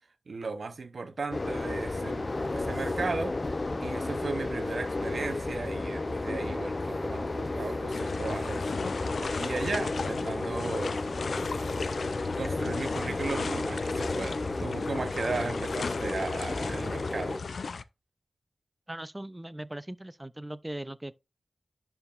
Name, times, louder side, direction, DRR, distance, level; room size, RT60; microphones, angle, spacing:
voice 1, 0.3-3.6 3.8-8.7 9.2-11.0 12.3-17.4, right 4 dB, 70° right, 0.8 m, -36 dB
sound 1, 1.3-17.4, left 2 dB, 40° left, 0.6 m, -32 dB
sound 2, 7.9-17.8, left 5 dB, 85° left, 0.4 m, -37 dB
voice 2, 18.9-21.1, right 1 dB, 15° right, 0.4 m, -39 dB
10.5 x 4.6 x 2.5 m
wide cardioid pair, 100°, 0 cm